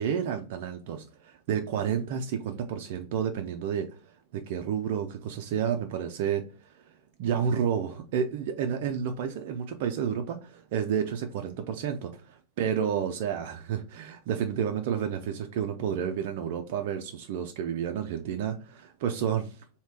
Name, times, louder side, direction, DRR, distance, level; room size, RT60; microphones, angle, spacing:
voice 1, 0.0-6.8 7.2-19.6, right 8 dB, 50° right, 0.4 m, -30 dB
3.2 x 2.8 x 4.5 m
figure-of-eight pair, 90°, 0 cm